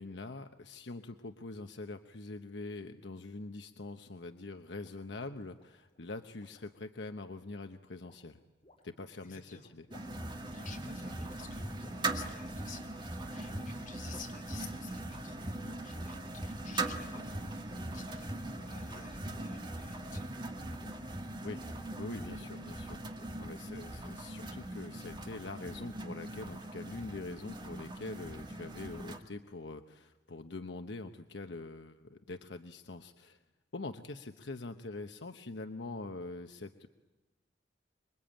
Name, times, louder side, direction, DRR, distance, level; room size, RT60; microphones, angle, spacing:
voice 1, 0.0-8.4 8.8-9.9 21.0-21.1 21.4-21.6 22.0-23.1 23.4-33.4 33.7-36.9, left 2 dB, 80° left, 7 dB, 1.0 m, -44 dB
sound 1, 4.5-6.8 8.0-8.2 8.6-8.8 9.7-10.4 10.8-11.3 11.8-12.1 13.5-13.7 14.3-15.2 15.9-16.3 17.1-18.2 18.9-19.8 20.8-21.0 21.2-21.7 22.4-22.8 23.1-23.6, left 1 dB, 30° left, 4.7 m, -62 dB
voice 2, 9.2-9.7 10.4-20.4, left 5 dB, 45° left, 1 dB, 4.3 m, -52 dB
sound 2, 9.9-29.2, right 2 dB, 25° right, 1.9 m, -40 dB
26.0 x 23.5 x 9.0 m, 1.2 s
head